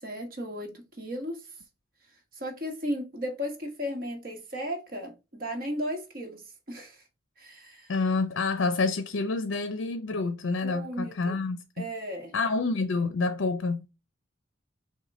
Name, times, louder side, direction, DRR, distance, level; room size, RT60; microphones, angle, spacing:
voice 1, 0.0-1.4 2.3-6.4 6.7-7.0 7.4-7.9 10.6-11.4 11.8-12.3, equal, 45° right, 1.2 m, -35 dB
voice 2, 7.9-11.8 12.3-13.9, left 3 dB, 70° left, 0.5 m, -28 dB
6.0 x 2.2 x 4.1 m
head